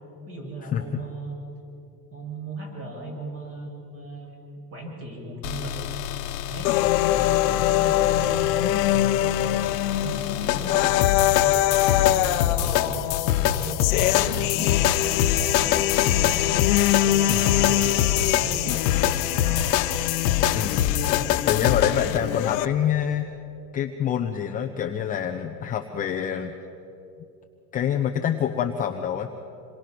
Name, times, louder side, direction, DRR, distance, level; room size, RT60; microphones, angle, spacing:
voice 1, 0.3-1.4 2.1-4.3 4.7-6.0 6.4-6.7 7.1-9.6 10.0-13.1 13.5-19.6 21.1-21.4, right 2 dB, 25° right, 0 dB, 7.0 m, -37 dB
sound 1, 5.4-22.2, left 11 dB, 75° left, 1.2 m, -25 dB
sound 2, 6.6-22.7, left 14 dB, 55° left, 1.0 m, -24 dB
voice 2, 17.3-17.7 20.5-20.9 21.5-23.3 23.7-26.5 27.7-29.3, left 9 dB, 15° left, 4 dB, 0.7 m, -26 dB
27.5 x 23.5 x 6.1 m, 2.7 s
supercardioid pair, 155°, 49 cm